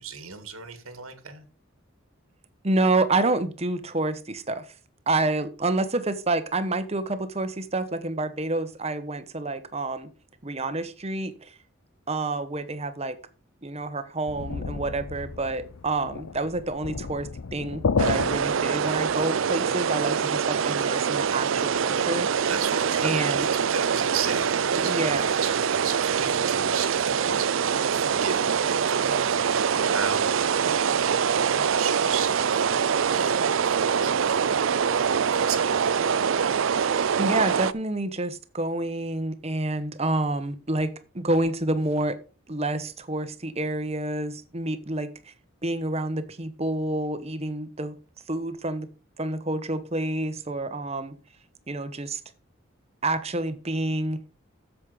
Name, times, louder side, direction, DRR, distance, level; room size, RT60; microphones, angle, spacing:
voice 1, 0.0-1.5 22.4-35.6, right 6 dB, 90° right, 1.9 m, -36 dB
voice 2, 2.6-4.7 5.1-10.1 10.4-11.5 12.1-13.2 13.6-22.3 23.0-23.5 24.8-25.3 37.2-42.2 42.5-45.3 45.6-48.0 48.3-48.9 49.2-51.2 51.7-52.2 53.0-54.2, right 2 dB, 30° right, 1.0 m, -28 dB
sound 1, 14.3-19.2, left 5 dB, 80° left, 0.6 m, -31 dB
sound 2, 18.0-37.7, right 7 dB, 65° right, 0.5 m, -24 dB
8.4 x 7.5 x 5.0 m
head